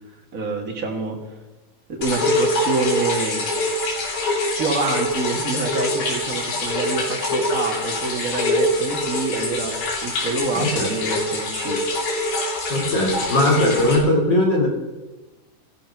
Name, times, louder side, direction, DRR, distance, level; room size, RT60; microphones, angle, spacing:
voice 1, 0.3-1.2 1.9-3.4 4.6-9.7 10.0-11.8, right 4 dB, 50° right, 1 dB, 1.0 m, -26 dB
sound 1, 2.0-14.0, left 2 dB, 75° left, 5.5 m, -24 dB
voice 2, 10.5-10.9 12.7-14.7, left 1 dB, 30° left, 0 dB, 3.1 m, -19 dB
14.5 x 13.5 x 6.1 m, 1.1 s
omnidirectional pair, 4.8 m